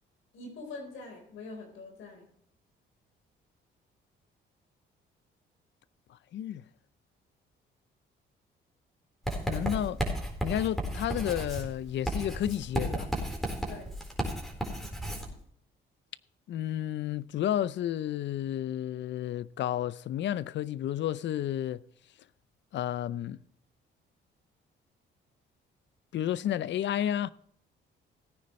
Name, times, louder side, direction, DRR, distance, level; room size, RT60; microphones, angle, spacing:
voice 1, 0.3-2.3 13.7-13.9, left 3 dB, 85° left, 4.2 m, -44 dB
voice 2, 6.3-6.6 9.5-10.0 10.4-13.1 16.5-21.8 22.7-23.4 26.1-27.3, left 11 dB, 65° left, 0.6 m, -31 dB
Writing, 9.3-15.3, right 1 dB, ahead, 4.0 m, -33 dB
17.5 x 9.5 x 3.2 m
cardioid pair, 90°, 20 cm